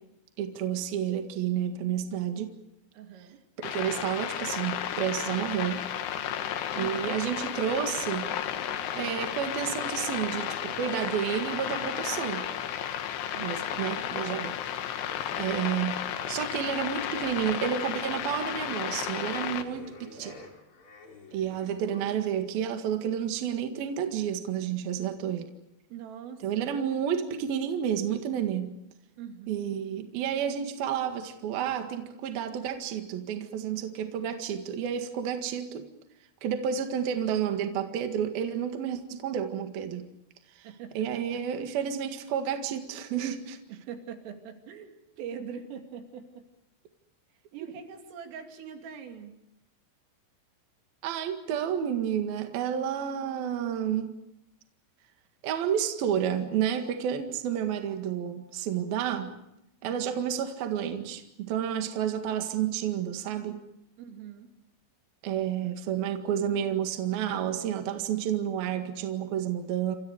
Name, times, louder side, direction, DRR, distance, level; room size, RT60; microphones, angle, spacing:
voice 1, 0.4-2.6 3.6-5.8 6.8-8.3 8.9-12.5 13.4-15.1 15.4-16.0 16.3-20.4 21.3-25.5 26.4-28.8 29.5-35.9 36.4-40.1 40.6-40.7 40.9-43.6 47.6-47.7 51.0-54.2 55.4-59.3 59.8-63.6 65.2-70.0, right 9 dB, 60° right, 6 dB, 3.2 m, -30 dB
voice 2, 2.9-3.4 6.8-7.2 13.3-13.8 15.3-15.5 25.9-26.8 29.2-29.6 40.6-41.4 43.7-46.5 47.3-49.4 59.8-60.2 64.0-64.5, right 7 dB, 85° right, 4 dB, 5.2 m, -43 dB
sound 1, 3.6-19.6, left 10 dB, 65° left, 3.2 m, -33 dB
sound 2, 7.7-10.4 10.7-13.1 13.6-22.2, left 3 dB, 30° left, 3.1 m, -49 dB
29.0 x 27.5 x 5.0 m, 0.82 s
omnidirectional pair, 5.7 m